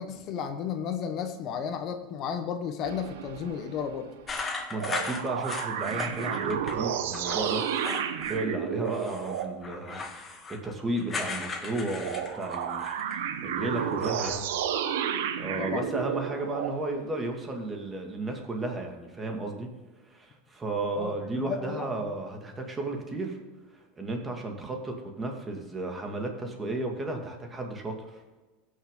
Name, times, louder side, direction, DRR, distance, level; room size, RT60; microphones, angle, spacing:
voice 1, 0.0-4.1 15.6-15.9 20.9-22.1, left 7 dB, 50° left, 7 dB, 1.1 m, -33 dB
sound 1, 2.8-4.5 4.7-9.6 12.0-16.8, right 9 dB, 80° right, 0.9 m, -32 dB
sound 2, 4.3-6.8 7.1-8.5 8.8-13.3 13.6-14.3, left 3 dB, 25° left, 1.7 m, -37 dB
voice 2, 4.7-14.4 15.4-19.7 20.1-23.4 24.0-28.2, right 2 dB, 20° right, 2 dB, 2.2 m, -34 dB
15.5 x 6.6 x 3.9 m, 1.2 s
supercardioid pair, 105°, 0 cm